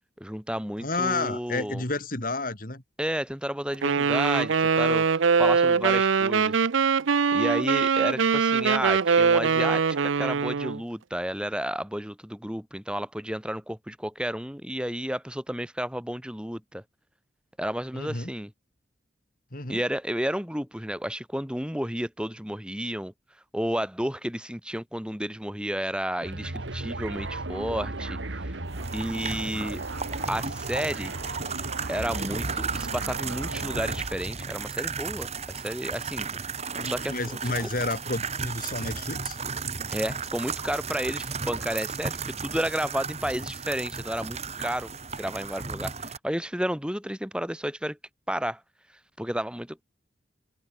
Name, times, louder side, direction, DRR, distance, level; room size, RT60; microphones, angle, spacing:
voice 1, 0.2-1.8 3.0-5.1 5.4-6.6 7.3-16.8 17.6-18.5 19.7-23.1 23.5-28.6 28.9-29.8 30.3-31.1 31.9-36.3 36.8-37.7 39.9-44.9 45.2-48.0 48.3-48.6 49.2-49.8, equal, 5° right, 3.5 m, -31 dB
voice 2, 0.8-2.8 17.9-18.3 19.5-19.8 36.8-39.4, left 2 dB, 45° left, 3.0 m, -31 dB
Wind instrument woodwind instrument, 3.8-10.8, right 5 dB, 85° right, 0.6 m, -22 dB
sound 1, 26.2-34.4, right 2 dB, 70° right, 1.9 m, -35 dB
sound 2, 28.7-46.2, right 5 dB, 35° right, 5.0 m, -34 dB
head